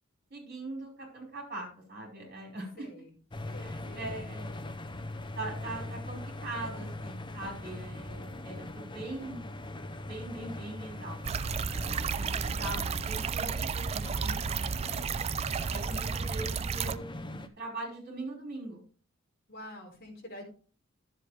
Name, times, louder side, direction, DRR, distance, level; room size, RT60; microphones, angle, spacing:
voice 1, 0.3-2.9 3.6-4.5 5.0-5.1 5.4-9.4 10.1-14.6 14.9-15.2 15.7-18.8, right 2 dB, 45° right, -1 dB, 5.1 m, -42 dB
voice 2, 2.8-3.1 3.5-4.3 19.5-20.4, left 1 dB, 50° left, -1 dB, 4.0 m, -47 dB
sound 1, 3.3-17.5, left 1 dB, 20° left, 0.7 m, -41 dB
sound 2, 11.2-17.0, right 6 dB, 30° right, 0.3 m, -32 dB
11.5 x 7.7 x 3.3 m, 0.40 s
head